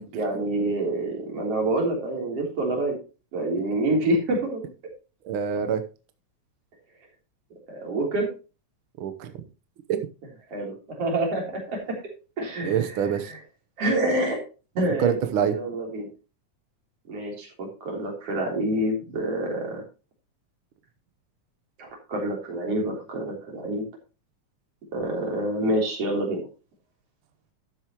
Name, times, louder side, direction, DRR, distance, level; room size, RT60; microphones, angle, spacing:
voice 1, 0.1-3.0 3.3-4.7 7.7-8.3 10.5-11.9 12.4-13.4 13.8-14.4 14.8-15.1 15.4-16.1 17.1-19.8 21.8-23.9 24.9-26.5, right 1 dB, 50° right, 0 dB, 4.4 m, -27 dB
voice 2, 5.2-5.8 9.0-9.3 9.9-10.0 12.6-13.3 15.0-15.5, right 8 dB, 70° right, 8 dB, 1.3 m, -25 dB
12.5 x 9.4 x 3.0 m, 0.32 s
omnidirectional pair, 3.4 m